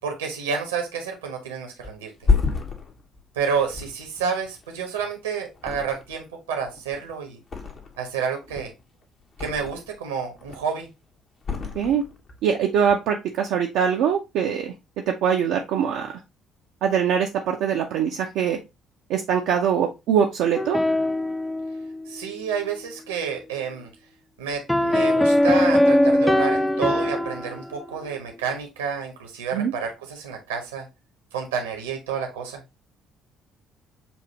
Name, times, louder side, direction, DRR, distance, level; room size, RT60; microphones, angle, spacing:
voice 1, 0.0-2.1 3.3-7.4 8.0-8.7 9.4-10.9 22.1-23.9 24.4-30.9 31.3-32.6, right 6 dB, 75° right, 4 dB, 1.1 m, -29 dB
Thump thud, 1.8-5.1 5.5-6.3 6.6-8.1 8.4-10.0 10.3-10.9 11.4-12.4 12.7-12.9, left 4 dB, 40° left, 1.0 m, -29 dB
voice 2, 12.4-14.7 15.1-16.1 16.8-18.6 19.1-20.8 29.5-29.7, right 8 dB, 60° right, 1 dB, 0.5 m, -22 dB
sound 1, 20.5-22.2 24.7-27.9, left 1 dB, 5° left, 0.4 m, -21 dB
7.0 x 2.7 x 2.9 m, 0.25 s
figure-of-eight pair, 50°, 0 cm